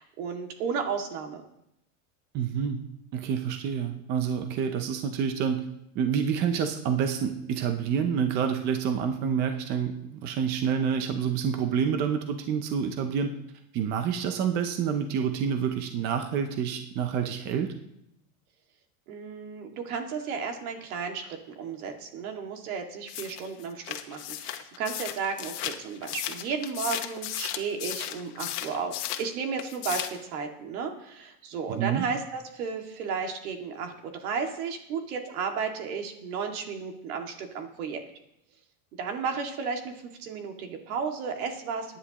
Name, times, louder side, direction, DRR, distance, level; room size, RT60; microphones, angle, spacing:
voice 1, 0.0-1.4 19.1-38.0 39.0-39.9 40.2-42.0, right 5 dB, 70° right, 3 dB, 2.2 m, -33 dB
voice 2, 2.3-2.8 3.1-5.6 6.0-13.3 13.7-17.7 31.7-32.0, right 7 dB, 25° right, 6 dB, 0.5 m, -28 dB
sound 1, 23.1-29.3 29.6-30.2, left 13 dB, 80° left, 1.3 m, -35 dB
23.0 x 10.0 x 3.0 m, 0.80 s
supercardioid pair, 170°, 45 cm